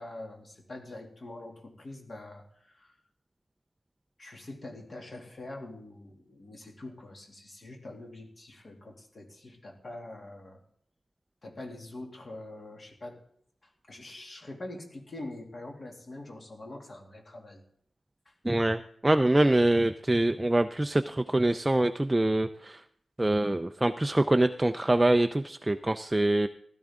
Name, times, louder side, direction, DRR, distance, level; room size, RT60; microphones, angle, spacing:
voice 1, 0.0-2.9 4.2-10.6 11.4-13.2 13.9-17.6 18.3-18.4, left 2 dB, 35° left, 1 dB, 2.4 m, -44 dB
voice 2, 18.4-22.8 23.2-26.5, right 1 dB, 10° right, 8 dB, 0.4 m, -25 dB
15.5 x 12.5 x 3.7 m, 0.67 s
wide cardioid pair, 165°, 0 cm